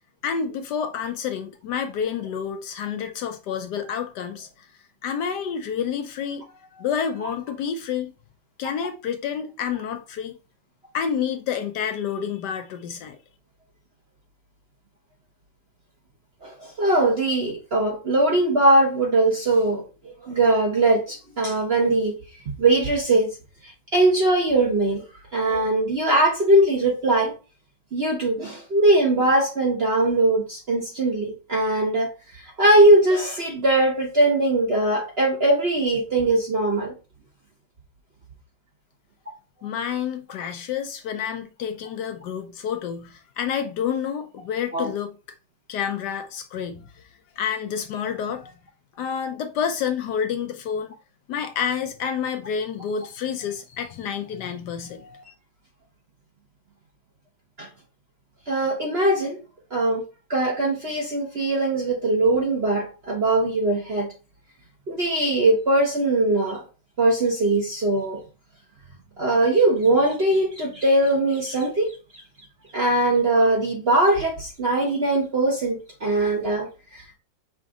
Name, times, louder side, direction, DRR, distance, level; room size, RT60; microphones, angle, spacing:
voice 1, 0.2-4.7 5.0-8.1 8.6-10.4 10.9-13.2 39.6-45.2 45.7-47.1 47.4-48.5 49.0-50.9 51.3-55.2, left 7 dB, 70° left, 1.1 m, -29 dB
voice 2, 16.4-22.1 22.6-23.4 23.9-25.0 25.3-27.3 27.9-36.9 44.7-44.9 57.6-57.7 58.5-59.4 59.7-60.0 60.3-64.1 64.9-66.6 67.0-68.2 69.2-71.9 72.7-77.2, right 2 dB, 45° right, 0.8 m, -21 dB
6.0 x 2.5 x 3.6 m
omnidirectional pair, 2.0 m